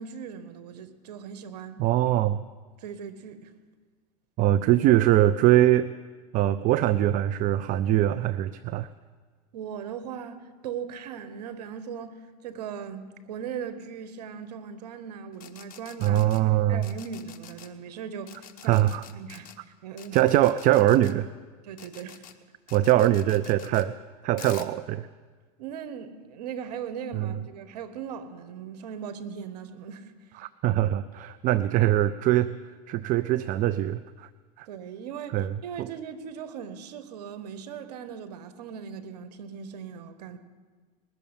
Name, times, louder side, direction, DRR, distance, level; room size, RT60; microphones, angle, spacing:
voice 1, 0.0-1.8 2.8-3.5 9.5-19.5 19.8-20.2 21.6-22.2 25.6-30.1 34.7-40.4, right 7 dB, 80° right, 1.2 m, -39 dB
voice 2, 1.8-2.4 4.4-5.9 6.3-8.9 16.0-16.9 18.6-19.0 20.1-21.3 22.7-23.9 24.2-25.1 27.1-27.3 30.4-32.6 32.9-34.3 34.6-34.7 35.3-35.9, right 13 dB, 40° right, 0.4 m, -22 dB
sound 1, 15.3-16.4 16.8-17.7 18.3-19.6 20.0-21.1 21.8-22.3 22.7-23.8 24.4-24.7, left 10 dB, 45° left, 1.1 m, -47 dB
20.0 x 6.9 x 8.9 m
supercardioid pair, 110°, 20 cm